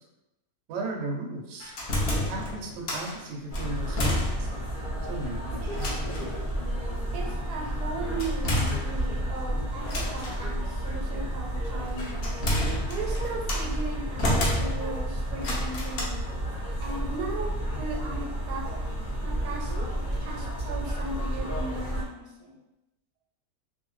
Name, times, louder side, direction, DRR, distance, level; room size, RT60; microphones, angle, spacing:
voice 1, 0.7-1.7 2.1-4.5 5.0-6.0, right 2 dB, 65° right, 1 dB, 0.8 m, -36 dB
sound 1, 1.6-3.2 3.5-4.7 5.0-5.1 5.7-6.3 8.2-9.3 9.8-10.4 11.6-13.7 14.2-15.0 15.4-16.0, left 1 dB, 80° left, 0.5 m, -30 dB
sound 2, 3.5-22.0, right 1 dB, 20° left, 0.5 m, -31 dB
voice 2, 7.1-12.4 12.9-16.2 16.8-18.6 19.2-19.8 20.2-22.6, right 2 dB, 85° right, -1 dB, 1.1 m, -37 dB
2.6 x 2.1 x 3.0 m, 0.95 s
omnidirectional pair, 1.7 m